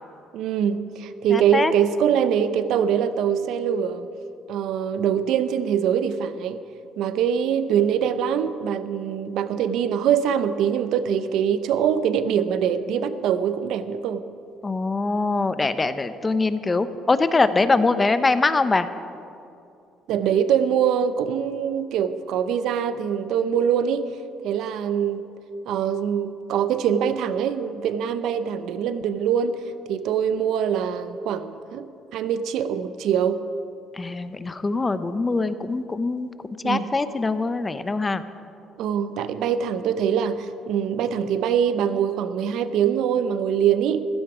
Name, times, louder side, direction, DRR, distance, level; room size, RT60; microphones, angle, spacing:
voice 1, 0.3-4.1 4.5-6.6 7.0-14.3 20.1-24.2 24.4-25.3 25.7-29.6 29.9-31.9 32.1-33.5 36.6-36.9 38.8-44.0, right 8 dB, 75° right, 12 dB, 0.7 m, -23 dB
voice 2, 1.3-1.7 14.6-18.9 34.0-36.3 36.6-38.2, left 3 dB, 20° left, 12 dB, 0.7 m, -23 dB
15.5 x 15.0 x 5.0 m, 2.6 s
cardioid pair, 100°, 0 cm